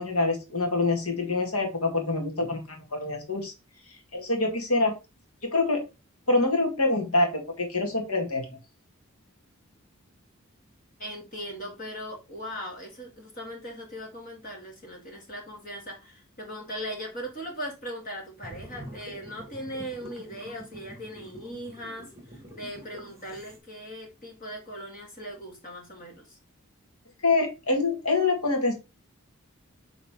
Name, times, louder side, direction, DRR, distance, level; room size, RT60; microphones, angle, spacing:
voice 1, 0.0-3.5 4.1-4.9 5.4-5.8 6.3-8.6 27.2-28.7, left 3 dB, 90° left, 2.1 m, -25 dB
voice 2, 11.0-26.4, equal, 40° left, 2.3 m, -39 dB
sound 1, 18.4-23.6, equal, 15° right, 1.6 m, -46 dB
7.4 x 4.0 x 3.7 m
head